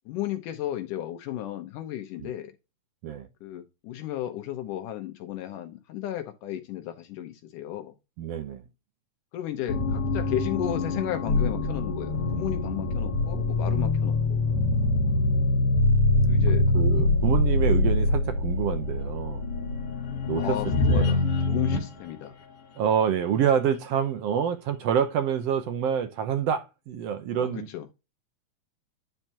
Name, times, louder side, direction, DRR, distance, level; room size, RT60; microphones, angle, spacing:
voice 1, 0.1-2.5 3.4-7.9 9.3-14.4 16.3-16.7 20.3-21.2 21.5-22.3 27.3-27.9, left 12 dB, 80° left, 2.4 m, -34 dB
voice 2, 8.2-8.6 16.5-19.4 20.3-20.6 20.9-21.1 22.8-27.7, right 8 dB, 70° right, 1.5 m, -27 dB
sound 1, 9.7-21.9, left 2 dB, 50° left, 2.5 m, -24 dB
10.5 x 4.5 x 2.8 m
omnidirectional pair, 3.7 m